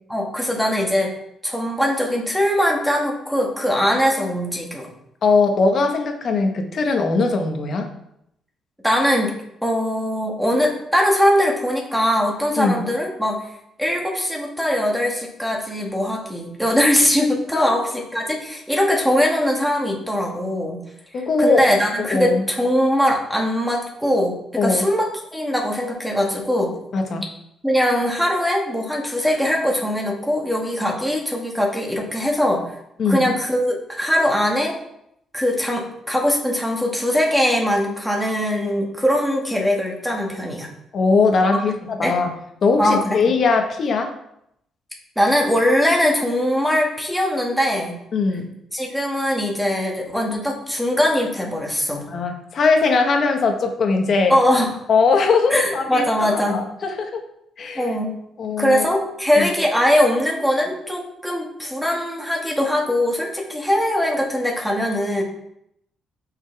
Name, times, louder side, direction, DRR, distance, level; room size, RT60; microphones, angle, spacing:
voice 1, 0.1-1.1 1.4-4.9 8.8-9.3 9.6-13.4 13.8-20.8 21.4-26.7 27.6-32.6 33.1-34.8 35.3-40.7 41.5-41.6 42.0-42.2 42.8-43.2 45.2-48.0 48.7-52.0 54.3-54.7 55.5-56.6 57.8-58.2 58.6-65.2, equal, ahead, -1 dB, 1.9 m, -21 dB
voice 2, 5.2-7.9 12.6-12.8 17.5-17.7 21.1-21.6 22.1-22.5 24.6-24.8 26.9-27.3 33.0-33.3 40.9-42.3 42.6-44.1 48.1-48.5 52.1-54.3 54.9-57.2 57.6-57.9 58.4-58.9 59.4-59.5, left 4 dB, 55° left, 4 dB, 1.4 m, -20 dB
7.9 x 5.7 x 3.5 m, 0.77 s
cardioid pair, 90°, 0 cm